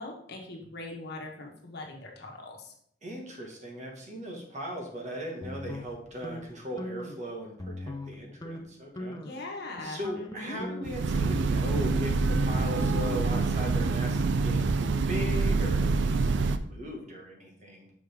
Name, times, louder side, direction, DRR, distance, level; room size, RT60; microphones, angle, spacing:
voice 1, 0.0-2.7 9.2-10.6, left 2 dB, 60° left, 0 dB, 1.2 m, -41 dB
voice 2, 3.0-9.2 9.8-17.9, equal, 40° right, 0 dB, 1.4 m, -38 dB
sound 1, 5.4-6.4 6.8-7.2 7.6-8.1 8.4-8.6 9.0-9.4 9.8-14.1, left 1 dB, 20° left, 0.5 m, -39 dB
Train, 10.8-16.6, right 4 dB, 65° right, 0.4 m, -26 dB
6.1 x 5.0 x 3.4 m, 0.64 s
head